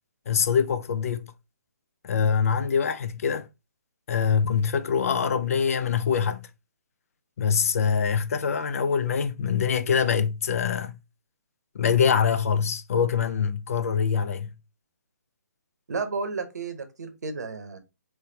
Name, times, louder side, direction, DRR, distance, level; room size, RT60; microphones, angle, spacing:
voice 1, 0.3-1.3 2.0-3.5 4.1-6.5 7.4-11.0 11.7-14.6, left 7 dB, 50° left, 0.4 m, -24 dB
voice 2, 15.9-17.8, right 4 dB, 65° right, 0.8 m, -32 dB
3.3 x 3.1 x 2.7 m
figure-of-eight pair, 140°, 10 cm